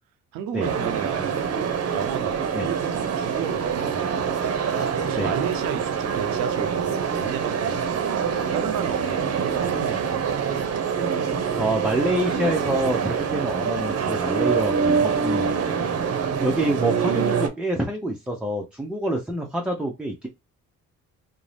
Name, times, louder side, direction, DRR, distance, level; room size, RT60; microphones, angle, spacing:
voice 1, 0.3-4.5 5.0-8.2 8.5-10.2, right 9 dB, 90° right, 0.5 m, -33 dB
sound 1, 0.6-17.5, right 6 dB, 45° right, 0.7 m, -25 dB
voice 2, 11.6-15.6 16.4-20.3, right 1 dB, 5° right, 0.5 m, -26 dB
2.6 x 2.0 x 3.2 m
supercardioid pair, 70°, 33 cm